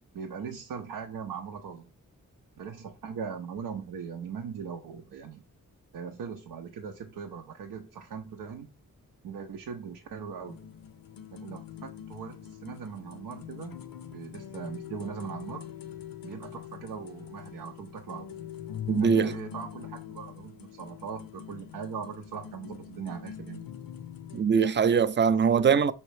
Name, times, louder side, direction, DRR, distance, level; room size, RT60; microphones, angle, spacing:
voice 1, 0.1-1.9 2.6-5.4 5.9-8.7 9.2-10.7 11.3-15.6 16.2-18.4 18.9-23.7, right 6 dB, 90° right, 0.6 m, -40 dB
sound 1, 10.4-24.4, left 10 dB, 75° left, 0.5 m, -43 dB
voice 2, 18.9-19.3 24.3-25.9, right 6 dB, 35° right, 0.4 m, -22 dB
5.4 x 2.9 x 3.2 m
cardioid pair, 50°, 34 cm